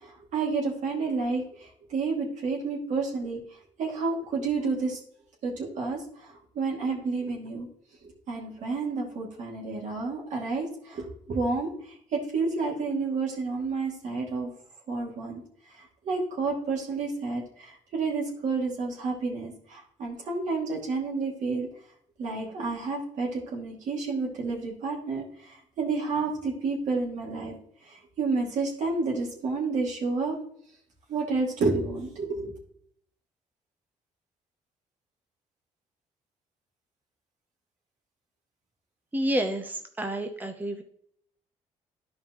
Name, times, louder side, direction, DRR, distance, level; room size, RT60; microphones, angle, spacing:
voice 1, 0.0-3.4 3.8-5.0 5.4-6.0 6.3-7.7 8.0-11.7 12.1-14.5 14.9-15.4 15.7-21.7 22.2-25.2 25.8-27.5 27.9-30.4 31.1-32.5, right 4 dB, 70° right, -1 dB, 2.5 m, -30 dB
voice 2, 39.1-40.8, right 1 dB, 15° right, 6 dB, 0.7 m, -29 dB
12.0 x 5.2 x 3.1 m, 0.65 s
cardioid pair, 80°, 13 cm